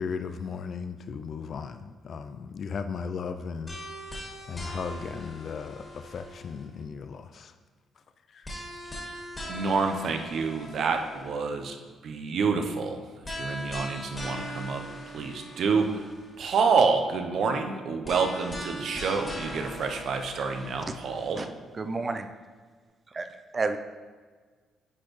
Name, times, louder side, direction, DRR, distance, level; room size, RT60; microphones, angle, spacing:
voice 1, 0.0-3.8 4.5-7.5 8.3-8.5, left 5 dB, 55° left, 9 dB, 0.3 m, -36 dB
sound 1, 3.7-6.8 8.4-11.4 13.2-16.4 18.0-21.5, equal, 25° left, 1.9 m, -40 dB
voice 2, 9.5-11.8 12.0-13.0 13.3-14.8 15.1-16.0 16.4-21.5, right 5 dB, 65° right, 5 dB, 0.7 m, -27 dB
voice 3, 21.7-22.3 23.1-23.3 23.5-23.8, right 3 dB, 30° right, 8 dB, 0.4 m, -30 dB
9.9 x 4.3 x 3.1 m, 1.5 s
cardioid pair, 90°, 0 cm